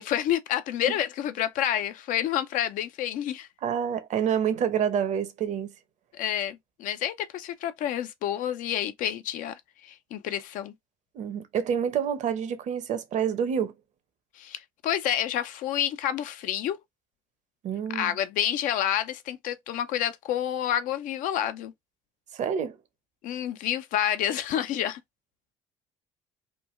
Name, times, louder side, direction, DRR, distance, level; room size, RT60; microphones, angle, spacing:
voice 1, 0.0-3.5 6.1-10.7 14.3-16.8 17.9-21.7 23.2-25.0, left 11 dB, 65° left, 0.5 m, -29 dB
voice 2, 3.6-5.7 11.1-13.7 17.6-18.1 22.3-22.8, right 8 dB, 55° right, 0.8 m, -28 dB
3.3 x 2.2 x 3.1 m
hypercardioid pair, 65°, 15 cm